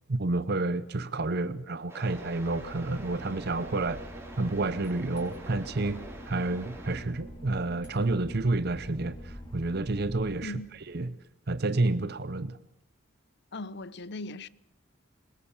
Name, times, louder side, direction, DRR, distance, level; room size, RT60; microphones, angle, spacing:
voice 1, 0.1-4.1 4.4-10.5 10.9-11.1 11.5-12.6, right 2 dB, 50° right, 0.7 m, -29 dB
sound 1, 1.9-7.0, right 2 dB, 15° right, 5.3 m, -46 dB
Boat Water vehicle / Engine, 2.0-10.9, equal, 25° left, 4.9 m, -46 dB
voice 2, 13.5-14.5, left 2 dB, 55° left, 0.7 m, -38 dB
22.0 x 21.0 x 7.2 m
head